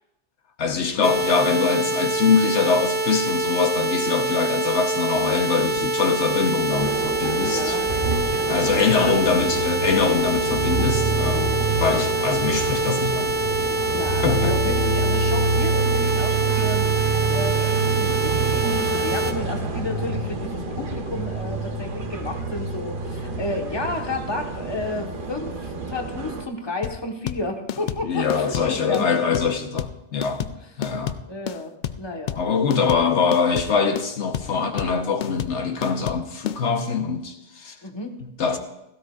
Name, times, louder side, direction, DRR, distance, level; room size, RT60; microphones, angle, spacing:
voice 1, 0.6-7.8 8.5-13.3 14.2-14.6 28.0-30.4 30.8-31.2 32.4-37.8 38.2-38.6, left 5 dB, 75° left, 1.2 m, -23 dB
sound 1, 1.0-19.3, right 2 dB, 15° right, 0.3 m, -25 dB
sound 2, 6.7-26.5, right 3 dB, 50° right, 1.1 m, -27 dB
voice 2, 7.4-7.8 10.1-10.3 11.1-11.4 13.6-16.9 17.3-29.2 30.4-30.5 30.8-31.0 31.3-32.4 37.8-38.2, left 2 dB, 25° left, 1.3 m, -32 dB
sound 3, 26.8-36.6, left 9 dB, 55° left, 0.5 m, -30 dB
16.5 x 15.5 x 2.4 m
omnidirectional pair, 1.2 m